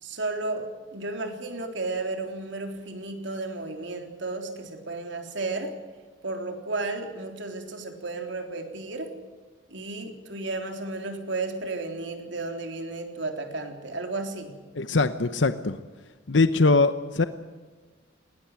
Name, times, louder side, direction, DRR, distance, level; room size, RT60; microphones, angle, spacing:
voice 1, 0.0-5.7 6.2-9.1 9.7-14.5, right 3 dB, 70° right, 4 dB, 3.7 m, -33 dB
voice 2, 14.7-15.8 16.3-17.2, left 3 dB, 70° left, 11 dB, 0.9 m, -22 dB
20.5 x 18.5 x 9.5 m, 1.4 s
head